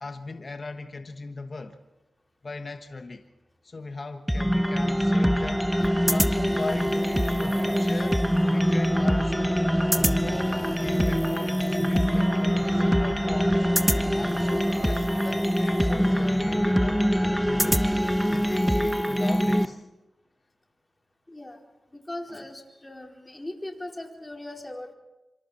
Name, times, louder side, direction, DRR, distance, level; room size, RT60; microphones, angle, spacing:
voice 1, 0.0-1.8 2.4-3.2 3.6-5.7 6.0-13.7 14.2-17.9 18.3-19.8 22.3-22.4, left 3 dB, 50° left, 6 dB, 1.3 m, -38 dB
sound 1, 4.3-19.7, equal, ahead, 1.2 m, -24 dB
sound 2, 7.2-16.2, right 2 dB, 70° right, 5.7 m, -43 dB
voice 2, 21.3-21.6 21.9-24.9, left 1 dB, 20° left, 1 dB, 4.4 m, -39 dB
26.0 x 26.0 x 4.3 m, 0.99 s
cardioid pair, 60°, 0 cm